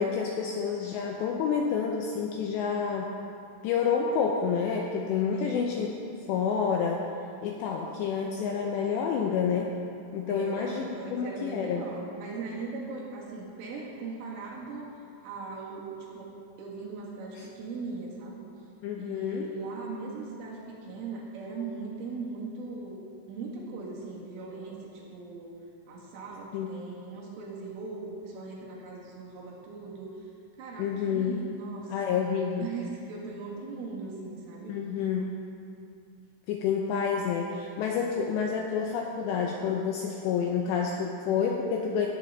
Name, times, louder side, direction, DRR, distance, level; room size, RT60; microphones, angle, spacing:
voice 1, 0.0-3.1 3.6-5.9 6.3-7.1 7.4-9.7 10.1-11.9 17.4-17.5 18.8-19.5 26.5-26.7 30.8-31.4 31.9-32.7 34.7-35.3 36.5-42.1, left 6 dB, 85° left, 1 dB, 2.5 m, -29 dB
voice 2, 5.3-5.7 10.3-14.9 15.2-18.5 19.0-25.5 25.9-30.2 30.6-32.3 32.6-34.8, right 4 dB, 80° right, -4 dB, 4.4 m, -39 dB
17.5 x 8.4 x 3.9 m, 2.6 s
omnidirectional pair, 5.7 m